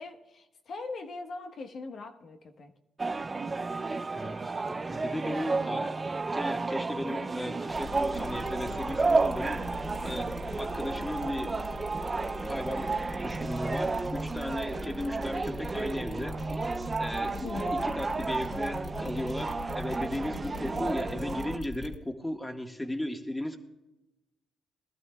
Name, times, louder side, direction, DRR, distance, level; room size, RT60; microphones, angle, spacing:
voice 1, 0.0-2.7 17.3-18.0, left 3 dB, 55° left, 5 dB, 1.2 m, -41 dB
sound 1, 3.0-21.6, right 3 dB, 25° right, 0.6 m, -32 dB
voice 2, 4.1-6.0 6.3-9.6 10.0-11.7 12.4-16.7 17.0-23.6, left 1 dB, 10° left, 4 dB, 1.5 m, -36 dB
sound 2, 7.7-22.0, left 3 dB, 35° left, 2.2 m, -42 dB
21.0 x 12.5 x 2.3 m, 0.99 s
cardioid pair, 90°, 0 cm